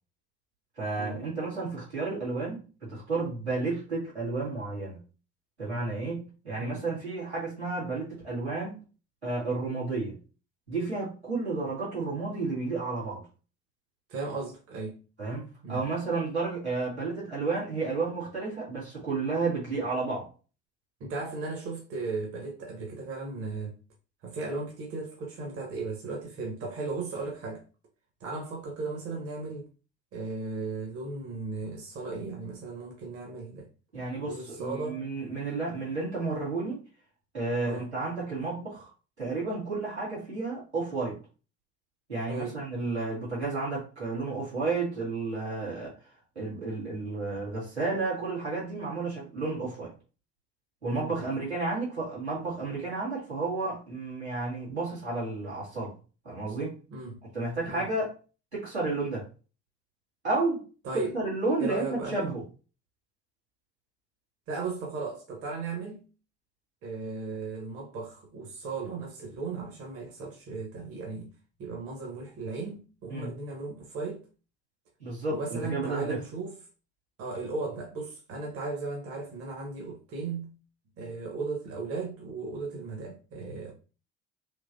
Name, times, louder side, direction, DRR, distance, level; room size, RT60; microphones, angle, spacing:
voice 1, 0.8-2.6 2.9-5.0 5.6-8.8 9.2-10.2 10.7-13.2 15.2-20.3 33.9-36.8 37.3-38.9 39.2-41.2 42.1-45.9 46.4-49.9 50.8-55.9 56.2-56.8 57.3-58.1 58.5-59.2 60.2-60.7 61.1-62.4 73.1-73.3 75.0-75.4 75.7-76.2, right 3 dB, 90° right, 2.0 m, -31 dB
voice 2, 14.1-15.0 15.6-15.8 21.0-23.8 24.2-27.6 28.2-29.7 30.1-33.7 34.2-35.0 37.6-37.9 42.3-42.6 50.9-51.1 56.9-57.2 57.6-57.9 60.8-61.1 61.6-62.2 64.5-66.0 66.8-71.3 71.6-74.2 75.3-76.5 77.2-80.5 81.0-83.7, right 3 dB, 45° right, 1.2 m, -36 dB
3.7 x 3.0 x 2.6 m
figure-of-eight pair, 60°, 32 cm